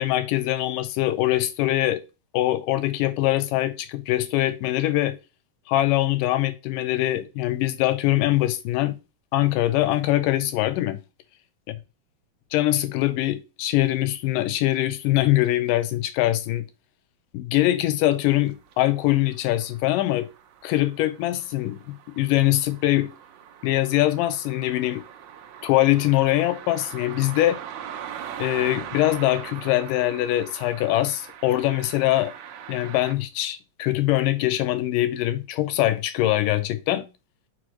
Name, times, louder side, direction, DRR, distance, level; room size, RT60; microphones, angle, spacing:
voice 1, 0.0-2.0 2.3-5.2 5.7-9.0 9.3-11.0 12.5-16.7 17.3-20.3 20.6-23.1 23.6-25.0 25.6-27.6 28.4-32.3 32.7-37.1, left 15 dB, 80° left, 2.2 m, -23 dB
sound 1, 18.5-33.2, right 9 dB, 75° right, 1.7 m, -41 dB
6.3 x 5.0 x 3.0 m
omnidirectional pair, 4.0 m